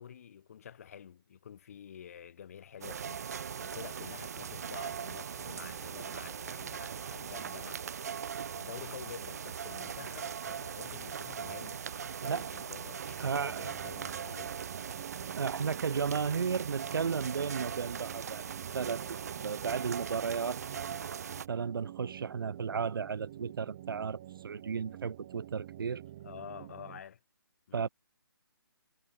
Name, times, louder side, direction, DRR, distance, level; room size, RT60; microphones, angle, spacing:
voice 1, 0.0-14.8 26.2-27.2 27.7-27.9, left 8 dB, 40° left, 3.3 m, -49 dB
sound 1, 2.8-21.5, right 7 dB, 40° right, 0.9 m, -40 dB
sound 2, 13.0-27.0, right 13 dB, 15° right, 0.4 m, -49 dB
voice 2, 13.2-13.7 15.3-20.6 21.5-26.0 27.7-27.9, right 6 dB, 65° right, 0.6 m, -34 dB
hypercardioid pair, 165°, 13 cm